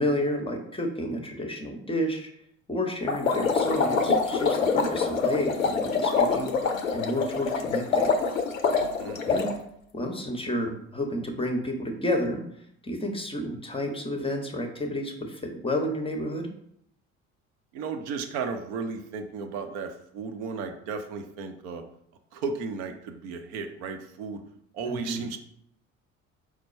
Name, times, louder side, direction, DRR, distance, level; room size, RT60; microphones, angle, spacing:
voice 1, 0.0-2.3 2.7-6.5 6.9-8.1 9.3-9.6 9.9-12.4 12.8-16.5 24.9-25.3, left 1 dB, 15° left, 4 dB, 0.6 m, -30 dB
sound 1, 3.1-9.5, left 4 dB, 85° left, 0.5 m, -25 dB
voice 2, 8.7-9.2 17.7-21.8 22.3-24.4 24.7-25.4, right 5 dB, 60° right, 5 dB, 0.6 m, -34 dB
4.6 x 2.2 x 4.2 m, 0.71 s
figure-of-eight pair, 55°, 40 cm